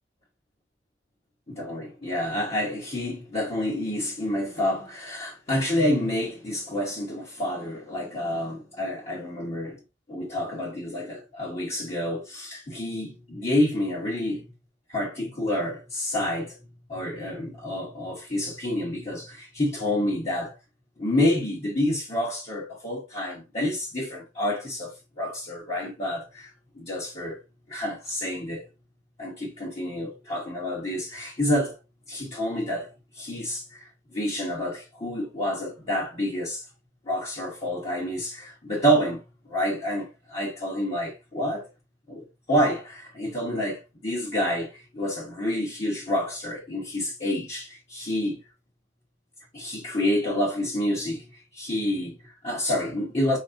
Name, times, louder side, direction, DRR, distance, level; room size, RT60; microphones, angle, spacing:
voice 1, 1.6-9.8 10.1-14.4 14.9-16.6 16.9-20.5 21.0-26.5 26.8-27.4 27.7-28.7 29.2-31.8 32.1-33.9 34.1-36.6 37.1-39.2 39.5-41.7 42.1-48.4 49.5-53.4, left 1 dB, 35° left, 1.2 m, -28 dB
4.6 x 4.2 x 2.5 m
head